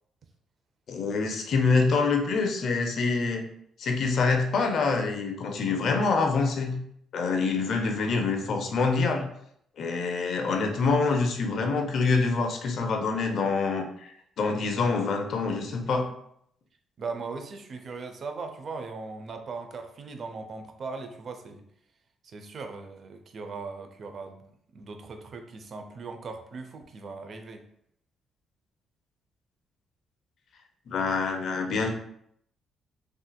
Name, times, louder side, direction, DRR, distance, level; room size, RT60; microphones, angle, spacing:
voice 1, 0.9-3.4 3.8-6.8 7.1-9.2 9.8-16.1 30.9-31.9, left 4 dB, 65° left, 4 dB, 0.5 m, -26 dB
voice 2, 17.0-21.6 22.2-24.5 24.7-27.6, right 4 dB, 50° right, 6 dB, 0.4 m, -39 dB
3.2 x 2.8 x 2.2 m, 0.70 s
cardioid pair, 90°, 0 cm